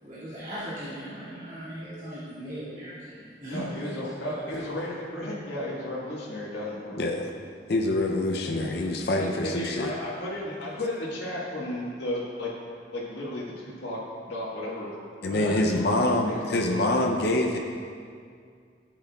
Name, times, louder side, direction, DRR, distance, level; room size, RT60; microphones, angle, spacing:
voice 1, 0.0-3.9 4.2-4.5 15.3-15.5, equal, 45° right, -13 dB, 2.3 m, -38 dB
voice 2, 3.4-7.1 9.2-12.5 12.9-14.9 15.4-16.7, left 1 dB, 75° left, -7 dB, 1.6 m, -34 dB
voice 3, 7.0-7.3 7.7-9.9 15.2-17.6, left 1 dB, 60° left, 2 dB, 0.6 m, -25 dB
12.5 x 7.9 x 2.4 m, 2.2 s
head